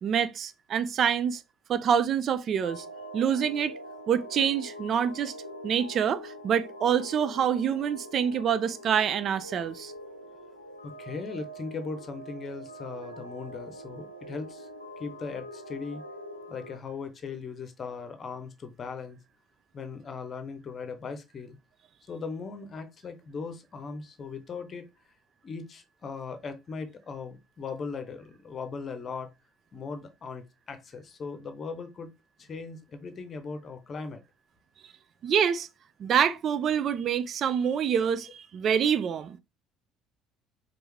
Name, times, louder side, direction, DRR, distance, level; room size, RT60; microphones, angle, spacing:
voice 1, 0.0-1.4 1.7-2.8 3.1-3.8 4.1-5.4 5.6-9.9 35.2-35.7 36.0-39.4, right 8 dB, 45° right, 0.3 m, -26 dB
sound 1, 2.5-16.8, equal, 90° left, 0.5 m, -44 dB
voice 2, 10.8-14.7 15.0-16.0 16.5-19.2 19.7-21.6 22.1-24.8 25.4-29.3 29.7-32.1 32.4-34.2, left 4 dB, 35° left, 0.8 m, -38 dB
4.5 x 2.6 x 3.3 m
figure-of-eight pair, 55°, 0 cm